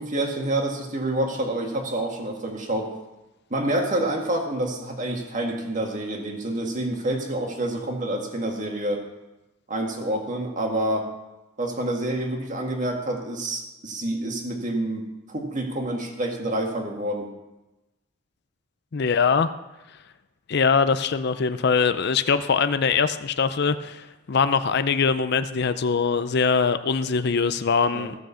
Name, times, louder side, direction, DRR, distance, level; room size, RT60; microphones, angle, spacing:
voice 1, 0.0-2.9 3.5-9.0 9.7-11.1 11.6-17.3 27.9-28.1, right 1 dB, 40° right, 2 dB, 1.8 m, -28 dB
voice 2, 18.9-19.5 20.5-28.1, left 5 dB, 55° left, 12 dB, 0.5 m, -22 dB
15.0 x 6.4 x 6.9 m, 1.0 s
head